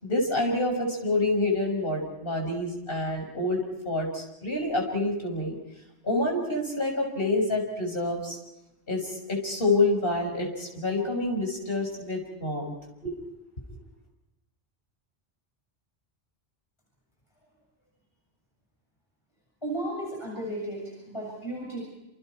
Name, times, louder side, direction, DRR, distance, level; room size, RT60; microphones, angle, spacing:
voice 1, 0.0-5.6 6.0-8.4 8.9-12.7 13.0-13.1, left 2 dB, 55° left, 1 dB, 6.8 m, -27 dB
voice 2, 19.6-21.8, right 1 dB, 25° left, -3 dB, 7.2 m, -34 dB
29.0 x 28.0 x 4.7 m, 0.93 s
omnidirectional pair, 1.1 m